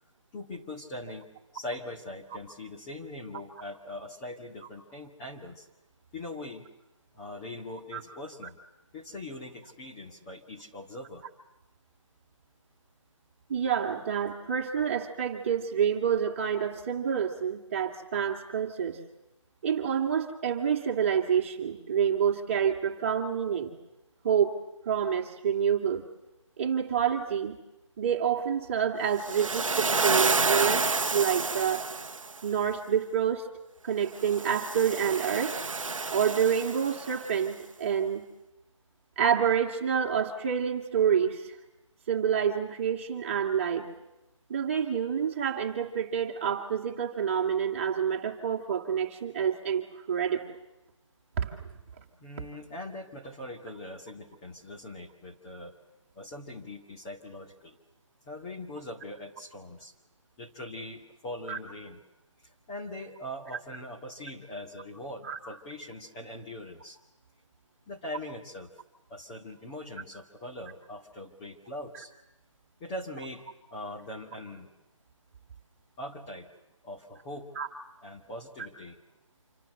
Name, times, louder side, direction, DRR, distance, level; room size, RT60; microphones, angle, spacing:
voice 1, 0.3-1.3 1.5-5.7 6.1-6.7 7.1-8.6 8.9-11.2 52.2-55.8 56.1-57.8 58.3-59.9 60.4-62.0 62.4-67.0 67.9-68.7 69.1-72.1 72.8-73.4 73.7-74.7 76.0-76.5 76.8-77.5 78.0-79.0, left 1 dB, 15° left, -1 dB, 2.1 m, -41 dB
voice 2, 13.5-19.0 19.6-23.7 24.2-24.5 24.9-26.0 26.6-27.6 28.0-31.8 32.4-33.4 33.8-35.5 36.1-38.2 39.2-41.4 42.1-43.9 44.5-50.4 51.4-51.6 61.5-61.6 65.2-65.4 77.6-77.7, right 8 dB, 25° right, 3 dB, 2.6 m, -28 dB
Waves surf, 29.2-32.4 34.2-37.3, right 4 dB, 80° right, 0.9 m, -29 dB
27.0 x 26.5 x 7.9 m, 0.92 s
figure-of-eight pair, 165°, 17 cm